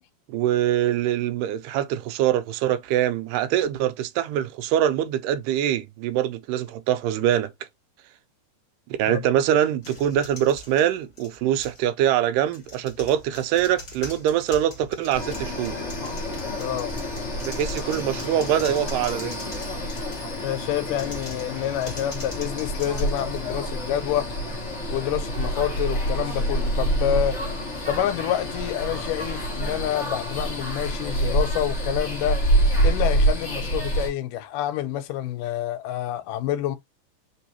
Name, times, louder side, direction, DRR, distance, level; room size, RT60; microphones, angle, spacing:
voice 1, 0.3-7.5 8.9-15.8 17.4-19.6, right 11 dB, 85° right, 2.2 m, -24 dB
sound 1, 9.8-11.9 12.5-20.4 20.9-23.8, left 2 dB, 30° left, 1.4 m, -42 dB
sound 2, 15.1-34.1, right 1 dB, 45° left, 0.8 m, -27 dB
voice 2, 16.6-16.9 20.4-24.4 24.9-27.6 27.9-32.5 32.8-36.8, left 12 dB, 85° left, 2.2 m, -28 dB
4.5 x 3.4 x 2.7 m
omnidirectional pair, 3.8 m